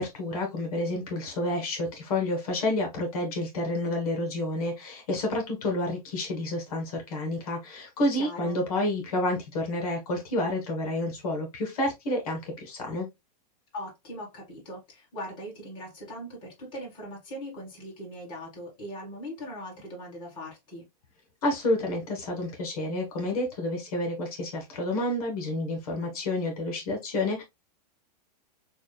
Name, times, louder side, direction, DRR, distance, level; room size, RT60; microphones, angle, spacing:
voice 1, 0.0-13.1 21.4-27.4, left 1 dB, 60° left, 1.5 m, -29 dB
voice 2, 8.1-8.6 13.7-20.8, equal, 25° left, 1.8 m, -40 dB
6.1 x 2.4 x 2.2 m
supercardioid pair, 170°, 21 cm